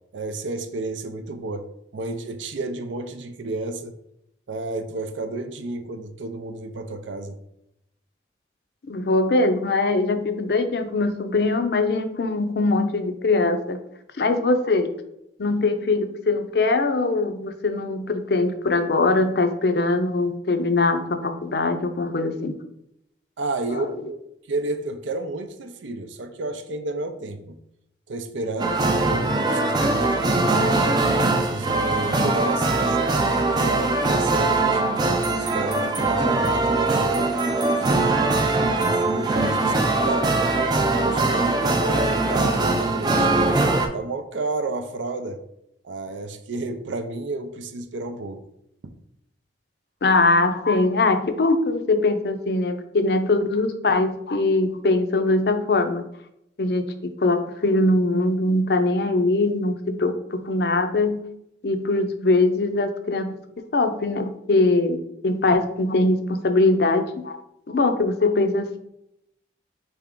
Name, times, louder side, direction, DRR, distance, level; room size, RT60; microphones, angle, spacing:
voice 1, 0.1-1.7 1.9-3.9 4.5-7.4 23.4-24.2 24.5-27.6 28.1-31.0 31.4-34.8 35.3-37.2 37.6-38.4 38.8-40.5 41.0-43.5 43.9-45.4 45.8-48.4 48.8-48.9, right 2 dB, 85° right, 9 dB, 0.5 m, -31 dB
voice 2, 8.9-13.8 14.2-14.9 15.4-22.6 23.7-23.9 50.0-56.0 56.6-56.9 57.2-61.2 61.6-67.4 67.7-68.8, left 2 dB, 60° left, 8 dB, 0.5 m, -22 dB
sound 1, 28.6-43.9, right 2 dB, 20° right, 0.4 m, -21 dB
4.1 x 3.4 x 3.7 m, 0.80 s
head